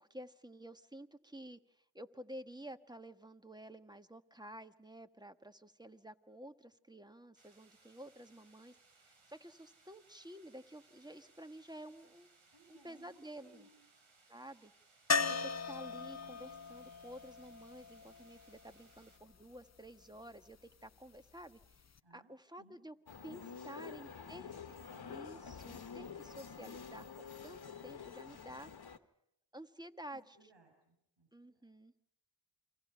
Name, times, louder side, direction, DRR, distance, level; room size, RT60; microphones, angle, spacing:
voice 1, 0.0-12.3 12.7-13.7 14.3-14.7 15.3-21.8 22.1-22.9 23.2-24.5 25.1-28.7 29.5-30.4 31.3-31.9, right 1 dB, 10° right, 9 dB, 1.5 m, -52 dB
sound 1, 7.4-19.2, right 3 dB, 75° right, 4.5 m, -67 dB
voice 2, 12.5-13.8 22.0-22.3 22.6-22.8 23.4-25.1 30.1-31.7, right 2 dB, 60° right, 2 dB, 7.5 m, -65 dB
sound 2, 15.1-19.0 21.6-21.7 22.0-22.1, left 5 dB, 35° left, 0.8 m, -37 dB
sound 3, 23.1-29.0, left 6 dB, 50° left, 1.5 m, -48 dB
29.0 x 23.0 x 5.7 m, 0.81 s
cardioid pair, 45°, 48 cm